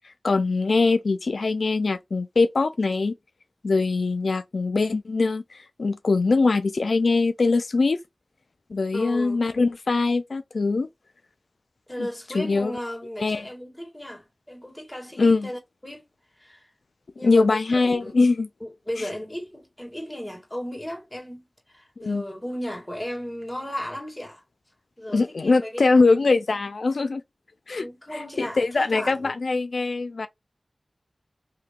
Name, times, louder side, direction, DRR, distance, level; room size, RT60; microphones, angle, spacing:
voice 1, 0.2-3.1 3.6-8.0 8.7-10.9 12.0-12.1 12.3-12.8 13.2-13.4 15.2-15.5 17.2-18.5 22.0-22.2 25.1-27.2 27.7-27.9 28.1-30.3, left 3 dB, 85° left, 0.4 m, -22 dB
voice 2, 8.9-9.4 11.9-16.1 16.4-16.7 17.2-18.2 18.6-24.4 25.0-26.3 27.8-29.3, equal, 10° left, 1.7 m, -35 dB
2.8 x 2.6 x 3.6 m
wide cardioid pair, 60°, 0 cm